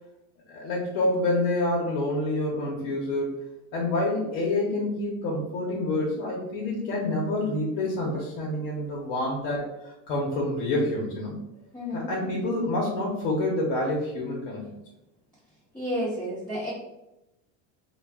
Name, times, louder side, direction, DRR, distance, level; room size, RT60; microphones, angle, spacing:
voice 1, 0.5-3.3 3.7-11.3 11.9-14.7, left 2 dB, 60° left, -4 dB, 0.9 m, -27 dB
voice 2, 11.7-12.1 15.7-16.7, equal, 5° left, -11 dB, 0.8 m, -31 dB
3.6 x 2.3 x 3.5 m, 0.93 s
cardioid pair, 155°, 35 cm